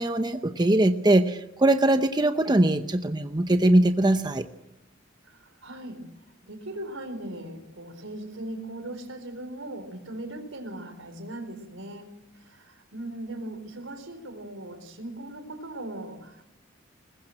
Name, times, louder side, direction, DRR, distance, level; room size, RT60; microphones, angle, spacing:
voice 1, 0.0-4.4, right 1 dB, 20° right, 8 dB, 0.8 m, -21 dB
voice 2, 5.2-6.0 6.5-16.4, right 1 dB, 85° right, 8 dB, 4.2 m, -39 dB
22.0 x 20.0 x 7.7 m, 0.91 s
head